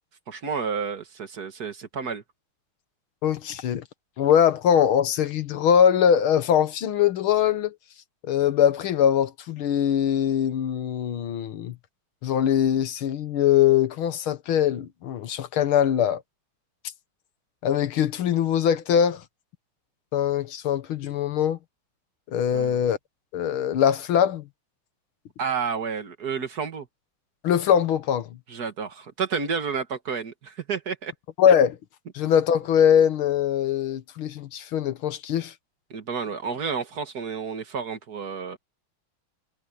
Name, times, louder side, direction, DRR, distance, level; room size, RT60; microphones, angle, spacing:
voice 1, 0.3-2.2 22.5-22.8 25.4-26.9 28.5-31.1 35.9-38.6, right 6 dB, 50° right, 2.0 m, -30 dB
voice 2, 3.2-3.8 4.2-7.7 8.3-11.8 12.2-16.2 17.6-19.2 20.1-21.6 22.3-23.0 23.3-24.4 27.4-28.3 31.4-31.8 32.1-35.5, left 9 dB, 80° left, 2.0 m, -22 dB
omnidirectional pair, 2.3 m